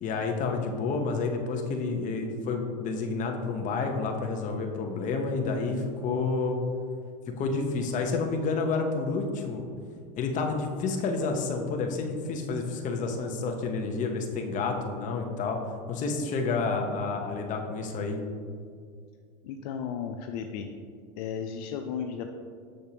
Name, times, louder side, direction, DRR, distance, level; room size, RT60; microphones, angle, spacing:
voice 1, 0.0-6.6 7.3-9.6 10.2-15.6 15.9-18.2, left 4 dB, 40° left, 3 dB, 0.9 m, -29 dB
voice 2, 19.4-20.7 21.2-22.3, left 7 dB, 65° left, 4 dB, 0.5 m, -34 dB
6.7 x 6.6 x 2.9 m, 2.2 s
supercardioid pair, 120°, 21 cm